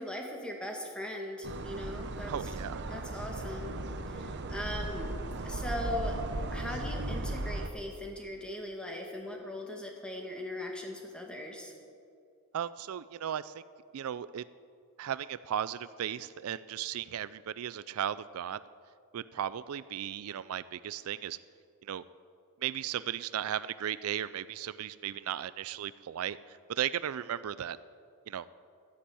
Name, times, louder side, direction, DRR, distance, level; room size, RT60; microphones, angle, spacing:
voice 1, 0.0-2.3 2.9-5.2 5.4-6.2 6.5-11.7, left 1 dB, 5° left, 1 dB, 1.9 m, -39 dB
sound 1, 1.4-7.7, right 2 dB, 50° right, 0.9 m, -36 dB
voice 2, 2.3-2.9 12.5-13.6 13.9-14.4 15.0-18.6 19.1-21.4 21.8-22.0 22.6-27.8 28.3-28.5, right 10 dB, 70° right, 16 dB, 0.4 m, -36 dB
13.0 x 10.0 x 8.6 m, 2.4 s
head